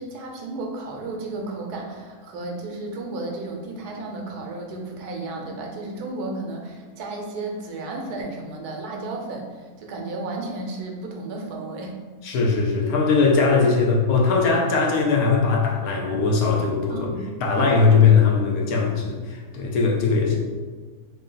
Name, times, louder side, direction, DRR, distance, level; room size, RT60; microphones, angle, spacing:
voice 1, 0.0-11.9 16.9-17.2, right 2 dB, 80° right, 1 dB, 1.2 m, -33 dB
voice 2, 12.2-17.1 17.4-20.4, left 4 dB, 75° left, -1 dB, 1.1 m, -20 dB
3.3 x 2.6 x 3.7 m, 1.4 s
omnidirectional pair, 1.7 m